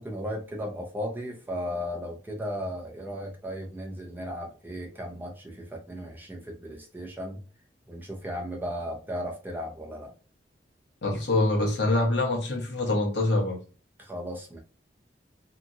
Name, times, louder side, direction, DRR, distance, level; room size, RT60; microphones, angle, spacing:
voice 1, 0.0-7.4 7.9-10.1 14.0-14.6, equal, 10° right, 0.6 m, -35 dB
voice 2, 11.0-13.6, left 2 dB, 70° left, 1.0 m, -25 dB
2.9 x 2.4 x 2.5 m
head